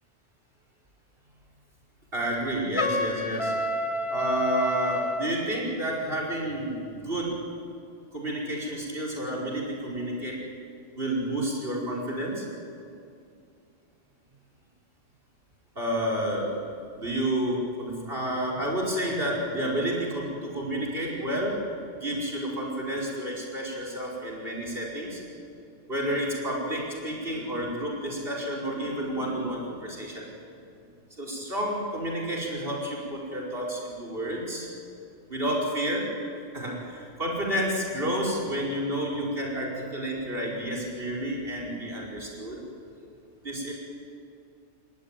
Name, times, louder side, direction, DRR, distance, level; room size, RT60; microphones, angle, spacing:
voice 1, 2.1-3.5 4.1-7.3 8.1-10.4 11.0-12.5 15.8-16.6 16.9-21.6 21.9-25.2 25.9-30.3 31.2-34.7 35.3-36.1 36.5-42.6 43.4-43.7, right 1 dB, 50° right, -1 dB, 5.5 m, -30 dB
Trumpet, 2.8-5.3, left 1 dB, 25° left, 1.1 m, -29 dB
28.5 x 21.5 x 9.1 m, 2.4 s
omnidirectional pair, 1.2 m